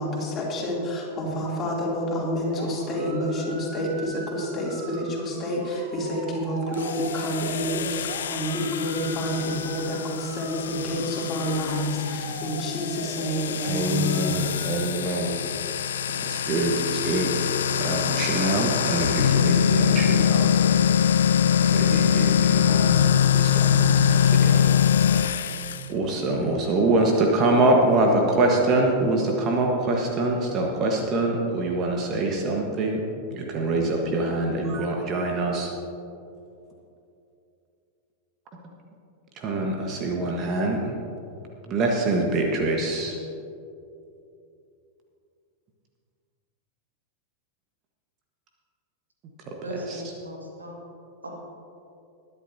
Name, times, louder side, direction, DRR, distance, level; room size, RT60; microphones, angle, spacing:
voice 1, 0.0-14.6, equal, 25° left, -3 dB, 3.2 m, -28 dB
sound 1, 2.5-14.9, right 3 dB, 50° right, 1.8 m, -41 dB
sound 2, 6.7-25.8, left 8 dB, 65° left, 0.5 m, -23 dB
voice 2, 13.6-15.4 16.1-20.6 21.0-21.1 21.7-24.7 25.1-25.6 25.9-33.0 33.3-35.7 39.3-40.9 41.6-43.2 49.5-50.1, right 2 dB, 35° right, 1 dB, 1.5 m, -25 dB
voice 3, 49.6-50.8 51.2-51.4, right 1 dB, 75° right, -1 dB, 2.2 m, -36 dB
21.0 x 11.0 x 2.9 m, 2.6 s
figure-of-eight pair, 90°, 0 cm